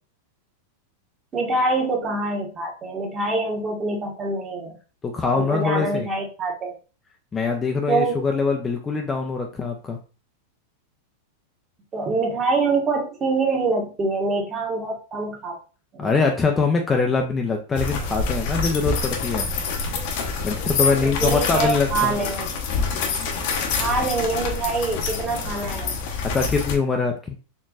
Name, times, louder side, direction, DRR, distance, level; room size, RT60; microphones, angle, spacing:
voice 1, 1.3-4.8 5.3-6.7 7.9-8.2 11.9-15.6 15.9-16.1 21.0-22.5 23.8-26.0, right 3 dB, 25° right, 0 dB, 1.3 m, -25 dB
voice 2, 5.0-6.1 7.3-10.0 16.0-19.5 20.4-22.1 26.2-27.3, left 4 dB, 20° left, 3 dB, 0.5 m, -23 dB
sound 1, 17.8-26.8, left 5 dB, 60° left, 0.9 m, -26 dB
4.4 x 3.0 x 2.4 m, 0.35 s
hypercardioid pair, 125°, 0 cm